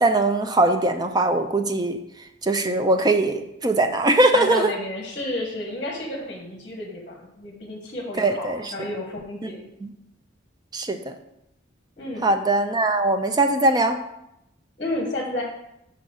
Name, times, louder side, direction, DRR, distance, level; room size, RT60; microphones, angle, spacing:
voice 1, 0.0-2.0 2.4-4.7 8.2-8.7 9.4-9.5 9.8-9.9 10.7-11.0 12.2-14.0, right 2 dB, 20° right, 6 dB, 0.5 m, -21 dB
voice 2, 4.3-9.6 12.0-12.3 14.8-15.4, left 1 dB, 35° left, -1 dB, 1.1 m, -31 dB
5.7 x 4.0 x 6.2 m, 0.83 s
head